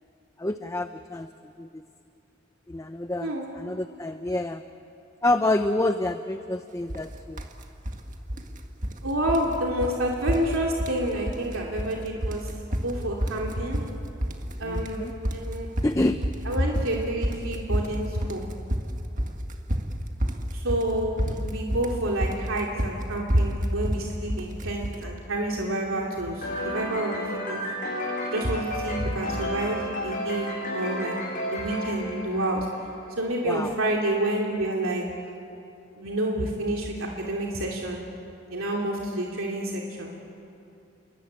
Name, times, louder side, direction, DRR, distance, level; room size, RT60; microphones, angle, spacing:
voice 1, 0.4-1.3 1.6-1.8 2.7-4.6 5.2-7.4 14.6-15.1 15.8-16.2 33.4-33.7, left 2 dB, 15° left, 8 dB, 0.6 m, -27 dB
sound 1, 6.9-7.1 7.4-8.0 8.3-9.0 9.3-9.5 9.8-10.0 10.3-11.0 11.3-11.9 12.2-25.0, equal, 40° right, 1.8 m, -29 dB
voice 2, 9.0-12.5 12.8-13.8 14.6-15.7 16.5-18.4 20.5-27.6 28.3-32.7 33.2-35.0 36.0-38.0 38.5-40.1, right 1 dB, 90° right, -1 dB, 2.8 m, -28 dB
sound 2, 26.4-33.1, equal, 40° left, 7.9 m, -32 dB
28.5 x 23.0 x 8.8 m, 2.7 s
head